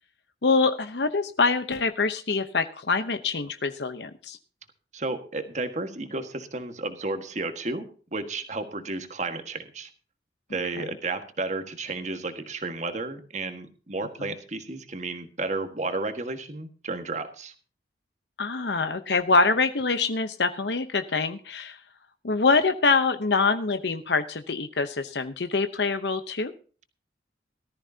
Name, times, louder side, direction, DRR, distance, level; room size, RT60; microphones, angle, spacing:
voice 1, 0.4-4.4 10.8-10.9 14.2-14.3 18.4-21.8 22.2-26.5, left 4 dB, 70° left, 9 dB, 0.9 m, -25 dB
voice 2, 4.9-7.8 8.1-9.9 10.5-17.5, right 3 dB, 40° right, 8 dB, 1.6 m, -32 dB
18.5 x 13.5 x 2.8 m, 0.39 s
head